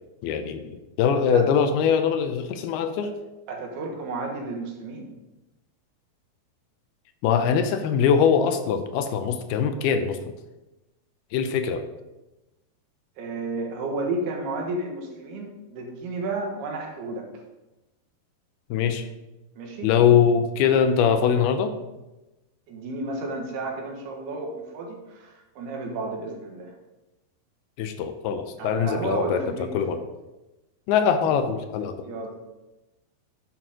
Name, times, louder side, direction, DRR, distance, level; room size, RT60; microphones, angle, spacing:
voice 1, 0.2-3.1 7.2-10.3 11.3-11.8 18.7-19.1 19.8-21.7 27.8-30.0 30.9-32.0, left 7 dB, 80° left, 8 dB, 2.6 m, -22 dB
voice 2, 3.5-5.1 13.2-17.3 19.6-19.9 22.7-26.7 28.6-29.7 32.0-32.4, right 2 dB, 75° right, 1 dB, 3.4 m, -32 dB
10.5 x 7.8 x 3.8 m, 1.0 s
omnidirectional pair, 4.6 m